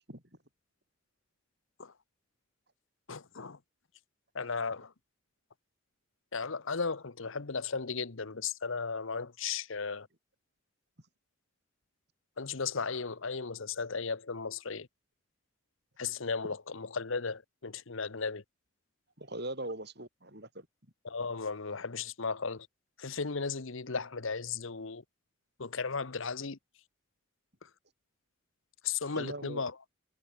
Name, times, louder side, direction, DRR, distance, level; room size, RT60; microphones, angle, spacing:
voice 1, 3.1-3.6 4.3-4.9 6.3-10.1 12.4-14.9 16.0-18.4 21.0-22.7 23.0-25.0 25.6-26.6 28.8-29.7, left 5 dB, 65° left, 1.0 m, -35 dB
voice 2, 19.2-20.7 29.1-29.6, right 1 dB, 50° right, 7.8 m, -40 dB
head